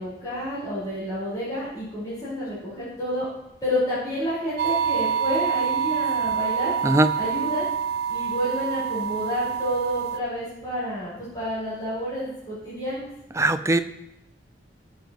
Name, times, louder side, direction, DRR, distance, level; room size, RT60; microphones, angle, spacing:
voice 1, 0.0-3.3 3.6-6.7 7.1-7.7 8.1-13.1, equal, 25° left, -11 dB, 4.9 m, -29 dB
sound 1, 4.6-10.2, right 7 dB, 60° right, 0.6 m, -26 dB
voice 2, 13.4-13.8, right 2 dB, 15° right, 10 dB, 0.6 m, -20 dB
20.5 x 7.2 x 3.1 m, 0.89 s
head